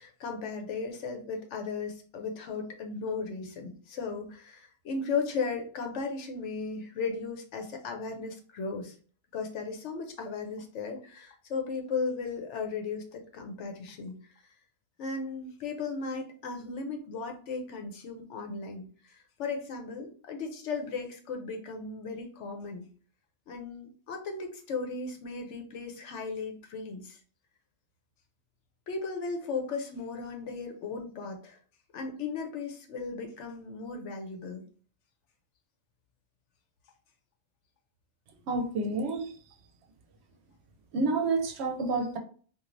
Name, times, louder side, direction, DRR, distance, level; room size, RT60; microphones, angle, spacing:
voice 1, 0.0-9.0 9.3-14.2 15.0-22.9 23.5-27.2 28.9-31.6 31.9-34.6, left 4 dB, 80° left, 1.0 m, -36 dB
voice 2, 38.5-39.3 40.9-42.2, right 3 dB, 70° right, 0.8 m, -29 dB
3.1 x 2.4 x 2.5 m
omnidirectional pair, 1.2 m